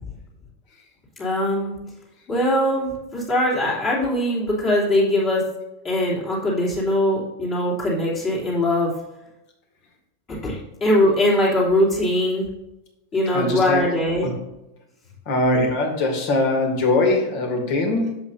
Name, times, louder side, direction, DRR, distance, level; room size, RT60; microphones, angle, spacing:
voice 1, 1.2-1.7 2.3-5.4 5.8-8.9 10.4-12.5 13.1-14.3, left 1 dB, 30° left, -6 dB, 3.0 m, -21 dB
voice 2, 13.3-13.8 14.2-14.3 15.3-18.2, left 2 dB, 45° left, 3 dB, 2.2 m, -21 dB
11.0 x 7.1 x 2.6 m, 0.94 s
figure-of-eight pair, 90°, 0 cm